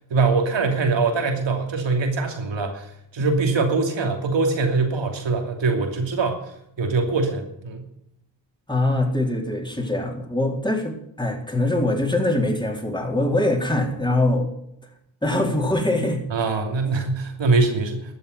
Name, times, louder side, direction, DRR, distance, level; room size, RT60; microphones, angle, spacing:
voice 1, 0.1-6.4 6.8-7.8 16.3-18.1, right 3 dB, 75° right, 4 dB, 2.9 m, -23 dB
voice 2, 8.7-14.5 15.2-16.2, left 1 dB, 10° left, 2 dB, 4.1 m, -23 dB
13.0 x 7.1 x 9.5 m, 0.76 s
cardioid pair, 45°, 45 cm